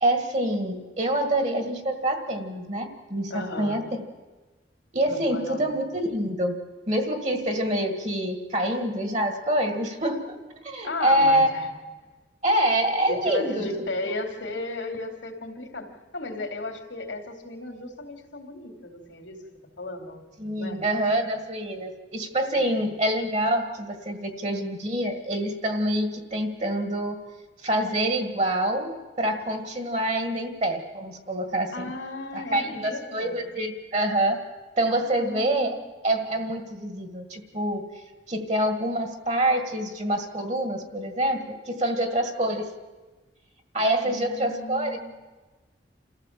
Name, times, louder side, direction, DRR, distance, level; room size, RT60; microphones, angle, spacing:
voice 1, 0.0-4.0 4.9-6.6 6.9-10.4 10.6-11.5 12.4-13.7 14.0-14.1 20.4-27.2 27.6-31.9 32.3-34.5 34.8-35.8 36.0-37.8 38.3-42.7 43.7-45.0, right 1 dB, 40° right, 6 dB, 1.8 m, -26 dB
voice 2, 3.3-3.8 5.0-5.7 10.8-11.7 13.1-19.4 19.8-20.9 22.5-22.8 31.7-33.4 35.1-35.8 44.0-45.0, left 2 dB, 85° left, 4 dB, 3.1 m, -35 dB
28.0 x 14.5 x 7.5 m, 1.3 s
head